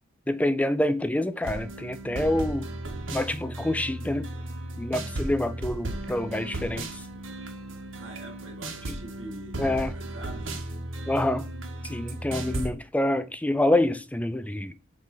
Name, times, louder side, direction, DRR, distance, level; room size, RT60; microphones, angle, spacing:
voice 1, 0.3-2.7 3.1-4.3 4.8-6.9 9.6-9.9 11.1-11.5 11.9-14.7, left 1 dB, 5° left, 0.5 m, -26 dB
sound 1, 1.4-12.7, right 1 dB, 85° right, 1.7 m, -35 dB
voice 2, 7.9-10.6, right 1 dB, 65° right, 2.1 m, -44 dB
7.5 x 3.8 x 5.6 m
head